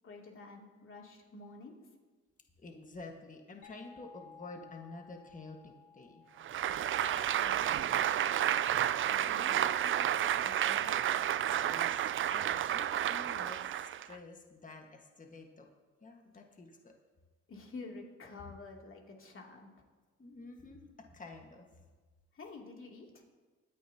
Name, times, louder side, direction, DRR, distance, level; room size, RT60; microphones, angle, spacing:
voice 1, 0.0-1.7 7.0-8.7 9.3-11.0 17.5-19.7 22.3-23.2, left 3 dB, 45° left, -1 dB, 2.8 m, -49 dB
voice 2, 2.6-6.2 9.1-9.6 11.6-15.7 16.0-16.9 20.2-21.7, left 3 dB, 25° left, 3 dB, 1.5 m, -50 dB
sound 1, 3.6-9.1, left 6 dB, 75° left, 3.1 m, -59 dB
Applause, 6.4-14.1, right 11 dB, 45° right, 0.4 m, -31 dB
23.5 x 9.4 x 2.9 m, 1.3 s
cardioid pair, 90°, 30 cm